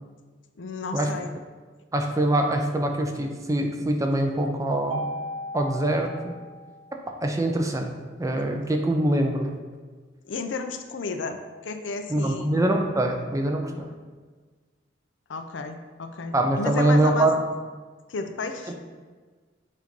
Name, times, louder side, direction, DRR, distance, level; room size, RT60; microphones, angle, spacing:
voice 1, 0.6-1.3 10.2-12.5 15.3-17.3 18.1-18.7, left 4 dB, 75° left, 7 dB, 0.5 m, -32 dB
voice 2, 1.9-5.1 5.5-6.4 7.2-9.5 12.1-13.9 16.3-17.4, right 1 dB, 15° right, 3 dB, 0.5 m, -24 dB
Mallet percussion, 4.9-7.2, equal, 75° right, 0.5 m, -36 dB
7.4 x 2.6 x 5.3 m, 1.4 s
head